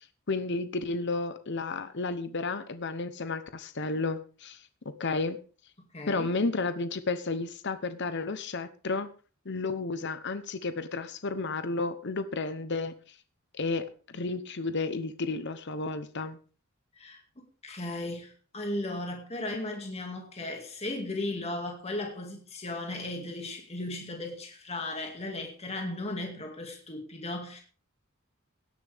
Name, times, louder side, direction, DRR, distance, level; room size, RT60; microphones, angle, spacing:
voice 1, 0.3-4.6 5.0-5.4 6.1-9.1 9.4-12.9 13.5-16.4, left 3 dB, 55° left, 11 dB, 0.9 m, -32 dB
voice 2, 5.9-6.3 17.0-17.2 17.6-27.6, left 2 dB, 30° left, 2 dB, 2.3 m, -36 dB
17.0 x 10.5 x 3.6 m, 0.38 s
head